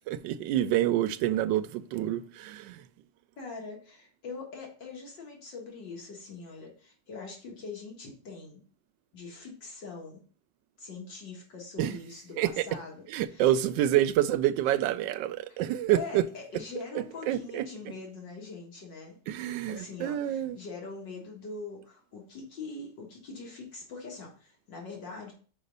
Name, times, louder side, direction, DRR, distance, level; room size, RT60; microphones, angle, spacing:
voice 1, 0.1-2.8 11.8-12.0 12.4-12.6 13.1-16.2 16.9-17.6 19.3-20.6, right 12 dB, 80° right, 1.2 m, -27 dB
voice 2, 3.4-8.6 9.1-10.2 10.8-13.6 15.5-15.6 15.9-19.2 19.6-25.3, left 4 dB, 70° left, 2.4 m, -43 dB
5.5 x 5.0 x 5.3 m
omnidirectional pair, 2.1 m